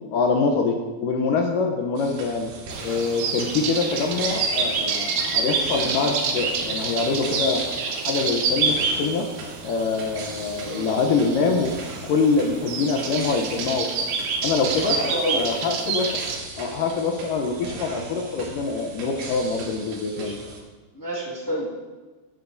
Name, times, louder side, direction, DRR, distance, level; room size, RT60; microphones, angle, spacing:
voice 1, 0.1-2.5 2.8-7.6 8.1-9.3 9.6-11.7 12.0-14.1 14.4-15.0 15.3-16.2 16.6-20.4, left 4 dB, 75° left, 3 dB, 2.0 m, -24 dB
sound 1, 2.0-20.6, right 3 dB, 85° right, 3.8 m, -40 dB
sound 2, 2.7-16.4, right 4 dB, 65° right, 2.5 m, -28 dB
voice 2, 10.6-10.9 14.8-15.4 20.1-20.3 20.9-21.9, equal, 20° left, -7 dB, 0.4 m, -29 dB
15.5 x 12.0 x 2.6 m, 1.3 s
omnidirectional pair, 4.6 m